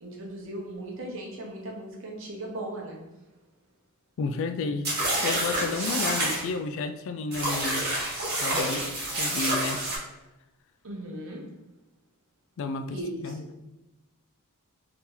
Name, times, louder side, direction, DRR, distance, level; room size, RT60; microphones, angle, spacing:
voice 1, 0.0-3.0 10.8-11.4 12.9-13.5, right 1 dB, 65° right, -1 dB, 0.9 m, -37 dB
voice 2, 4.2-4.9 5.2-7.9 8.4-8.9 9.2-9.8 12.6-13.4, left 4 dB, 60° left, 9 dB, 0.3 m, -31 dB
sound 1, 4.8-6.4 7.3-10.0, right 1 dB, 50° right, 1.2 m, -28 dB
2.9 x 2.7 x 3.7 m, 1.0 s
head